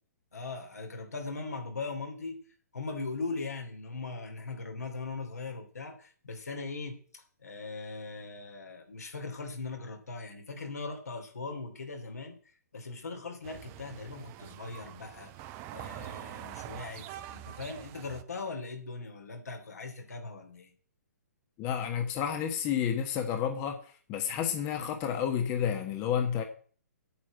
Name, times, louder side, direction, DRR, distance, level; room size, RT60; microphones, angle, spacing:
voice 1, 0.3-2.4 2.7-12.4 12.7-15.3 15.7-20.7, left 3 dB, 70° left, 4 dB, 2.8 m, -40 dB
sound 1, 13.4-18.2, right 13 dB, 25° right, 0.7 m, -45 dB
voice 2, 21.6-26.4, left 8 dB, 25° left, 5 dB, 1.4 m, -30 dB
8.7 x 6.2 x 8.4 m, 0.43 s
figure-of-eight pair, 125°, 9 cm